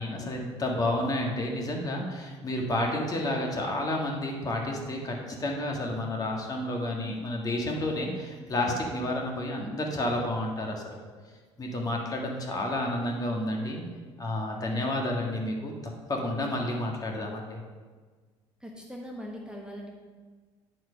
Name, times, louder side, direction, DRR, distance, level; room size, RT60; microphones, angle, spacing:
voice 1, 0.0-10.8 11.6-13.8 14.2-15.7 16.1-17.6, left 1 dB, 30° left, 0 dB, 1.8 m, -30 dB
voice 2, 18.6-20.0, equal, 5° right, -1 dB, 1.2 m, -41 dB
10.5 x 4.6 x 5.2 m, 1.4 s
supercardioid pair, 90°, 12 cm